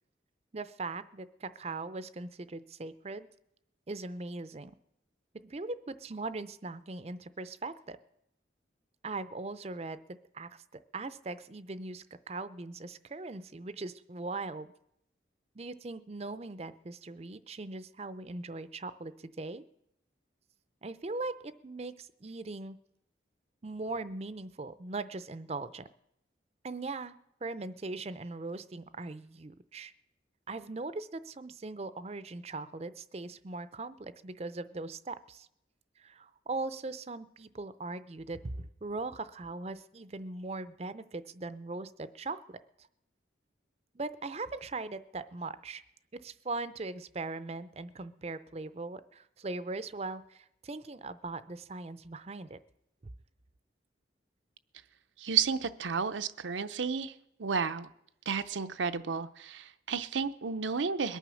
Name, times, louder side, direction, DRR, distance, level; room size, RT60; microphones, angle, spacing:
voice 1, 0.5-3.3 3.9-4.7 5.4-8.0 9.0-14.7 15.6-19.6 20.8-22.8 23.6-25.9 26.6-29.9 30.5-35.5 36.0-42.9 43.9-45.8 46.1-52.6, right 3 dB, 35° right, 14 dB, 0.5 m, -40 dB
voice 2, 55.2-57.1 57.4-57.9 58.3-61.2, right 6 dB, 85° right, 10 dB, 0.7 m, -32 dB
21.5 x 9.1 x 6.3 m, 0.81 s
head